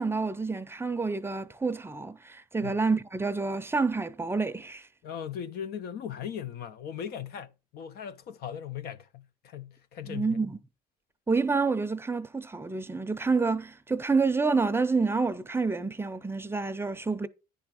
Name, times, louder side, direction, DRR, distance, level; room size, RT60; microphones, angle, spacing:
voice 1, 0.0-4.8 10.0-10.6 11.3-17.3, right 4 dB, 15° right, 0.5 m, -28 dB
voice 2, 5.0-10.4, left 9 dB, 70° left, 0.6 m, -38 dB
9.8 x 3.5 x 4.9 m
cardioid pair, 110°, 17 cm